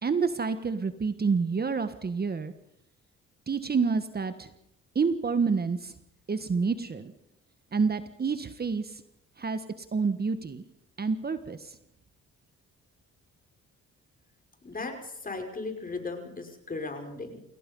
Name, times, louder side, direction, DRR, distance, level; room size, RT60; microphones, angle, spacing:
voice 1, 0.0-2.5 3.5-4.5 4.9-5.9 6.3-7.1 7.7-9.0 9.4-9.6 9.9-10.6 11.0-11.8, right 5 dB, 30° right, 10 dB, 1.4 m, -28 dB
voice 2, 14.6-17.4, left 3 dB, 30° left, 4 dB, 5.7 m, -37 dB
28.0 x 17.5 x 5.5 m, 0.78 s
cardioid pair, 90°, 30 cm